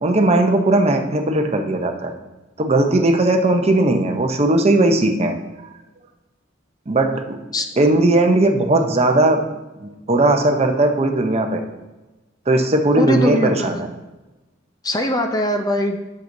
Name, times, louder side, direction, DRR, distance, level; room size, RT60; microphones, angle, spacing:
voice 1, 0.0-2.1 2.6-5.4 6.9-7.4 7.8-9.5 9.8-11.6 12.5-13.9, right 2 dB, 35° right, 5 dB, 0.7 m, -17 dB
voice 2, 13.0-13.8 14.8-16.0, left 1 dB, 20° left, 4 dB, 0.5 m, -21 dB
10.5 x 6.6 x 2.6 m, 1.1 s
head